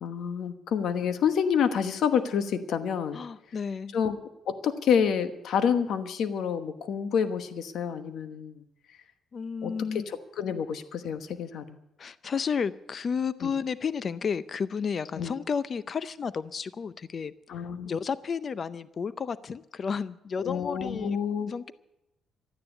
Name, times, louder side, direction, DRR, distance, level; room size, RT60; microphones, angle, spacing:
voice 1, 0.0-3.2 3.9-4.2 4.5-8.6 9.6-11.8 13.4-13.5 15.2-15.3 17.5-17.9 20.4-21.5, left 7 dB, 70° left, 1.1 m, -28 dB
voice 2, 3.1-3.9 9.3-10.1 12.0-17.3 17.8-21.2 21.5-21.7, left 6 dB, 45° left, 0.5 m, -32 dB
13.0 x 9.6 x 9.9 m
cardioid pair, 90°, 0 cm